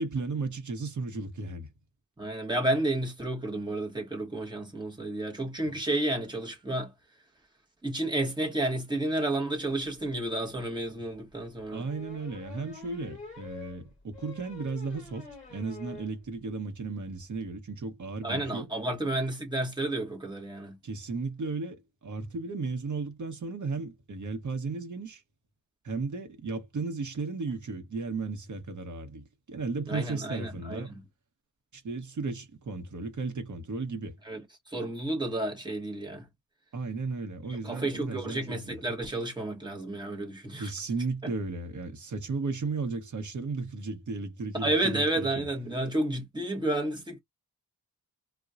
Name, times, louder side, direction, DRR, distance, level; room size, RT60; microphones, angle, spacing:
voice 1, 0.0-1.7 5.7-5.8 11.7-18.7 20.8-25.2 25.8-30.9 31.7-34.2 36.7-38.8 40.6-45.5, right 4 dB, 50° right, 0.9 m, -35 dB
voice 2, 2.2-6.9 7.8-11.9 18.2-20.8 29.9-31.0 34.3-34.4 34.7-36.3 37.6-40.7 44.5-47.2, right 1 dB, 10° right, 1.1 m, -31 dB
sound 1, 11.8-16.1 16.5-16.6 16.9-17.0 17.2-17.4, left 5 dB, 15° left, 2.5 m, -46 dB
4.0 x 2.2 x 2.4 m
wide cardioid pair, 125°, 39 cm